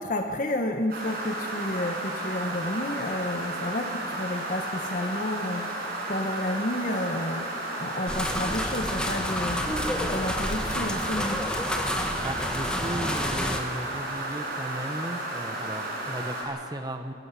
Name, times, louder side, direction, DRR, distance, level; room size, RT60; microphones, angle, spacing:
voice 1, 0.0-9.7 10.0-11.4, left 1 dB, 40° left, 4 dB, 1.0 m, -31 dB
sound 1, 0.9-16.4, right 1 dB, 50° right, 5.1 m, -33 dB
sound 2, 8.1-13.6, left 1 dB, 5° left, 1.3 m, -30 dB
voice 2, 12.2-17.1, right 1 dB, 20° right, 6 dB, 0.8 m, -35 dB
21.5 x 15.5 x 8.3 m, 2.4 s
head